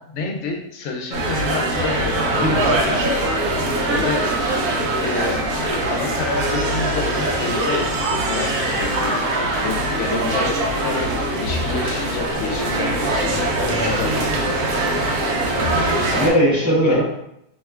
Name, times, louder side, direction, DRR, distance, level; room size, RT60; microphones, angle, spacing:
voice 1, 0.0-3.6 4.0-4.6 5.0-5.5 5.9-15.0 16.8-17.0, left 4 dB, 65° left, 2 dB, 0.8 m, -29 dB
sound 1, 1.1-16.3, right 1 dB, 85° right, 1.1 m, -22 dB
voice 2, 2.4-2.8 3.7-4.1 10.0-10.3 16.1-17.0, equal, 20° right, -8 dB, 0.4 m, -20 dB
2.9 x 2.2 x 3.4 m, 0.76 s
omnidirectional pair, 1.6 m